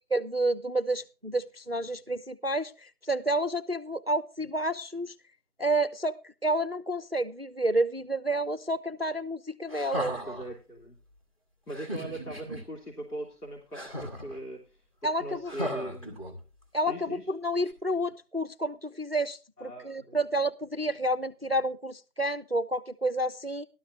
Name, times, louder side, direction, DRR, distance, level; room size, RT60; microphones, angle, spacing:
voice 1, 0.1-5.1 5.6-10.1 15.0-15.5 16.7-23.7, right 1 dB, 40° right, 10 dB, 0.5 m, -30 dB
sound 1, 9.7-10.5 11.7-12.6 13.7-14.4 15.5-16.6 17.7-17.8, equal, 20° left, 2.2 m, -36 dB
voice 2, 10.1-11.0 11.7-16.2 16.9-17.3 19.6-20.2, right 1 dB, 75° left, -1 dB, 3.4 m, -41 dB
15.0 x 12.5 x 2.6 m, 0.32 s
figure-of-eight pair, 165°, 46 cm